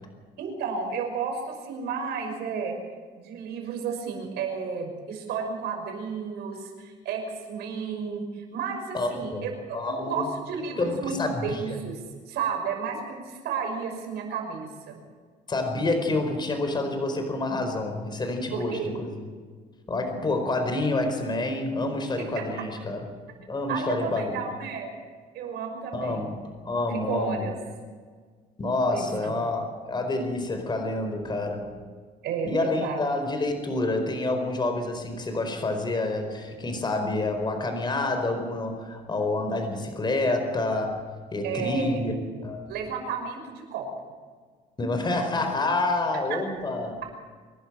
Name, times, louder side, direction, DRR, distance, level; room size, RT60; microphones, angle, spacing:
voice 1, 0.4-2.7 3.2-7.2 7.5-15.0 18.5-18.9 22.5-22.6 23.7-24.9 25.3-26.3 26.9-27.5 28.9-29.4 32.2-33.0 41.4-42.0 42.7-43.9 46.3-46.4, right 5 dB, 80° right, 3 dB, 6.0 m, -32 dB
voice 2, 8.9-9.4 9.7-10.3 10.8-11.6 15.5-19.3 19.9-23.0 23.5-24.5 25.9-27.5 28.6-31.7 32.4-42.1 42.4-42.7 44.8-47.0, left 2 dB, 25° left, 5 dB, 4.6 m, -28 dB
25.0 x 12.0 x 8.9 m, 1.6 s
cardioid pair, 110°, 17 cm